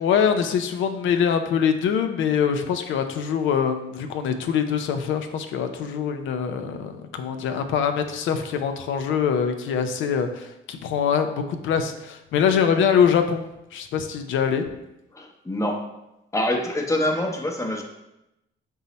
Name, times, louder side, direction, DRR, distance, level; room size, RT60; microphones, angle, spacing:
voice 1, 0.0-13.4 13.7-14.7, left 7 dB, 75° left, 8 dB, 0.5 m, -23 dB
voice 2, 15.1-15.9 16.3-17.8, left 1 dB, 15° left, 2 dB, 0.7 m, -25 dB
5.3 x 2.0 x 4.0 m, 0.89 s
cardioid pair, 90°, 20 cm